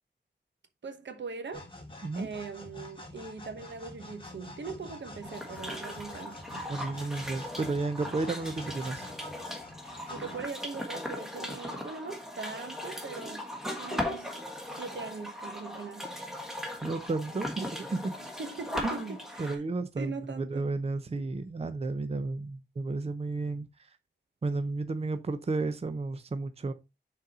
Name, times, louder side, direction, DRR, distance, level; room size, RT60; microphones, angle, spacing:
voice 1, 0.8-1.7 2.2-6.7 10.1-14.3 14.8-16.1 18.4-19.6 20.0-20.7, right 4 dB, 80° right, 1.0 m, -41 dB
sound 1, 1.5-10.8, left 1 dB, 30° left, 1.5 m, -47 dB
sound 2, 5.2-19.6, left 1 dB, ahead, 1.4 m, -38 dB
voice 2, 6.7-9.1 16.8-18.3 18.8-23.7 24.4-26.7, right 3 dB, 35° right, 0.6 m, -33 dB
6.3 x 4.1 x 4.1 m
wide cardioid pair, 125°, 18 cm